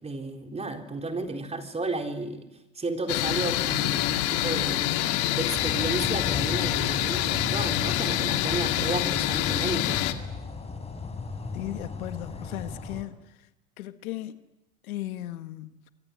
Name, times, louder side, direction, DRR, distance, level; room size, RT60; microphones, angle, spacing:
voice 1, 0.0-2.5 2.8-4.9 5.3-10.0, right 2 dB, 15° right, 3.9 m, -32 dB
sound 1, 3.1-10.1, left 15 dB, 60° left, 2.3 m, -26 dB
sound 2, 5.5-13.0, left 4 dB, 15° left, 4.7 m, -36 dB
voice 2, 11.5-13.4 13.8-14.4 14.8-15.8, left 14 dB, 80° left, 1.8 m, -36 dB
28.0 x 24.0 x 8.5 m
supercardioid pair, 110°, 42 cm